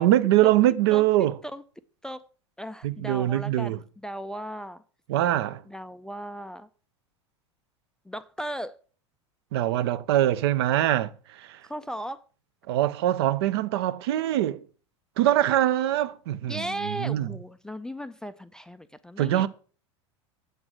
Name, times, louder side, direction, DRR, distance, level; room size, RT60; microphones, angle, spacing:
voice 1, 0.0-1.4 2.8-3.8 5.1-5.6 9.5-11.6 12.7-14.6 15.2-17.3 19.2-19.5, right 13 dB, 55° right, 0.5 m, -23 dB
voice 2, 0.9-1.6 2.0-2.2 2.6-4.8 5.7-6.7 8.1-8.7 11.7-12.2 16.4-19.5, equal, 5° left, 0.3 m, -36 dB
7.9 x 4.7 x 6.2 m
figure-of-eight pair, 80°, 15 cm